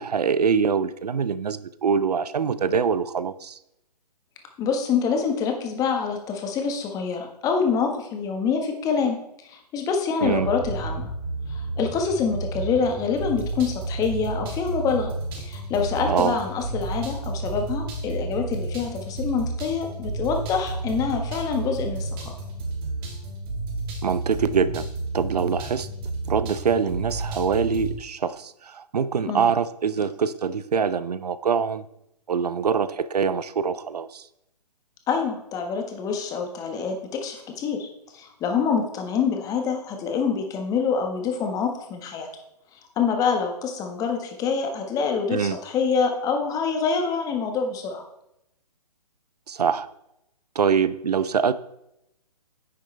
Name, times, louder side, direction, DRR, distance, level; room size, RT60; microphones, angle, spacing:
voice 1, 0.0-3.6 10.2-10.5 16.1-16.4 24.0-24.9 25.1-25.9 26.3-31.8 32.3-34.2 45.3-45.6 49.5-49.9 50.6-51.5, right 6 dB, 70° right, 15 dB, 0.7 m, -24 dB
voice 2, 4.6-9.2 9.4-11.1 11.5-15.1 15.4-22.4 29.3-29.5 35.1-37.9 38.1-42.3 42.7-48.0, left 5 dB, 15° left, 4 dB, 1.4 m, -26 dB
sound 1, 10.2-28.0, right 2 dB, 35° right, 2.6 m, -31 dB
9.8 x 9.0 x 3.3 m, 0.81 s
figure-of-eight pair, 135°, 21 cm